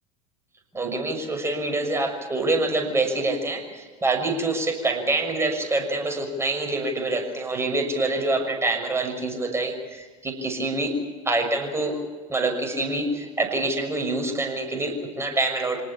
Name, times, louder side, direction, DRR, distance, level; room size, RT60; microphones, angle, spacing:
voice 1, 0.7-10.9 11.2-12.0 12.3-15.8, right 2 dB, 15° right, 4 dB, 6.4 m, -26 dB
25.5 x 19.5 x 7.2 m, 1.4 s
hypercardioid pair, 85°, 18 cm